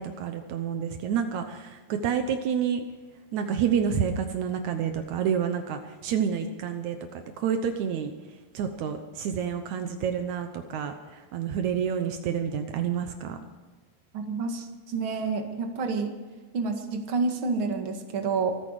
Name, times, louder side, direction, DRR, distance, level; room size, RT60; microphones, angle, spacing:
voice 1, 0.0-2.9 3.3-8.1 8.5-13.4, right 7 dB, 90° right, 7 dB, 1.6 m, -29 dB
voice 2, 14.1-16.1 16.5-18.5, right 4 dB, 45° right, 4 dB, 1.8 m, -29 dB
25.0 x 10.0 x 4.9 m, 1.3 s
omnidirectional pair, 4.7 m